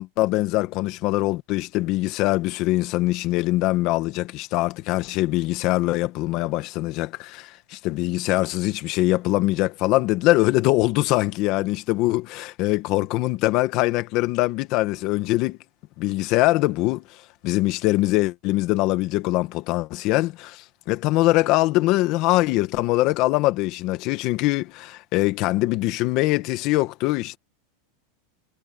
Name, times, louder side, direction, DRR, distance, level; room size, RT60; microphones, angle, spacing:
voice 1, 0.0-15.6 16.0-17.0 17.4-27.4, left 18 dB, 40° left, 1.5 m, -23 dB
supercardioid pair, 160°, 0 cm